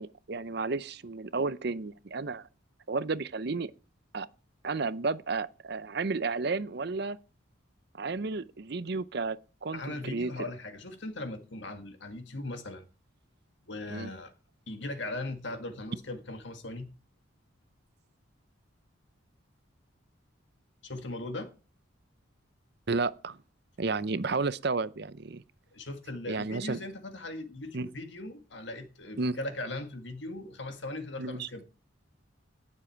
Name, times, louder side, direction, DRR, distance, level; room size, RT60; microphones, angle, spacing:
voice 1, 0.0-2.5 2.9-3.7 4.1-4.3 4.6-7.2 7.9-10.3 13.9-14.1 22.9-23.4 23.8-25.4 26.3-26.8 27.7-27.9 29.2-29.4 31.2-31.5, right 3 dB, 50° right, 0.6 m, -32 dB
voice 2, 9.7-12.9 13.7-14.3 14.7-16.9 20.8-21.5 25.7-31.7, left 2 dB, 60° left, 1.8 m, -39 dB
18.5 x 7.5 x 4.6 m
head